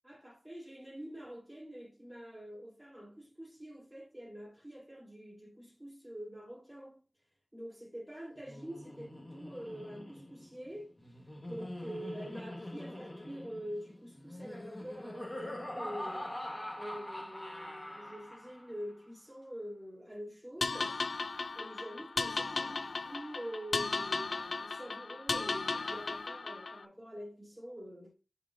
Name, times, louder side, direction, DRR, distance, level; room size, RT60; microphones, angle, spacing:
voice 1, 0.0-7.0 7.5-11.0 11.5-16.3 16.8-21.0 21.5-28.1, equal, 10° right, 1.2 m, -46 dB
Laughter, 8.4-18.8, left 1 dB, 20° left, 1.0 m, -44 dB
sound 1, 20.6-26.8, left 3 dB, 70° left, 0.3 m, -36 dB
9.9 x 3.9 x 2.4 m
wide cardioid pair, 90°, 0 cm